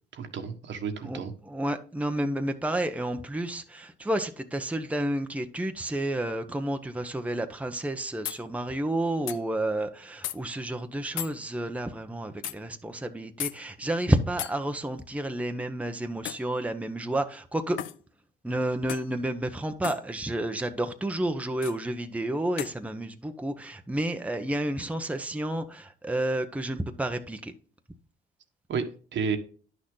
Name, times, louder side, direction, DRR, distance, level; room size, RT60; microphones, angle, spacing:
voice 1, 0.1-1.3 28.7-28.9 29.1-29.4, right 6 dB, 65° right, 1.5 m, -31 dB
voice 2, 1.0-17.8 18.4-27.5, right 1 dB, 5° right, 0.9 m, -30 dB
sound 1, 8.2-8.4 9.3-9.4 10.2-10.4 11.2-11.4 12.4-12.6 13.4-13.6 14.4-14.6 16.2-16.5 17.8-18.0 18.9-19.1 19.8-20.0 21.6-21.8 22.6-22.8, left 13 dB, 80° left, 0.5 m, -35 dB
10.0 x 6.4 x 3.8 m
cardioid pair, 90°, 20 cm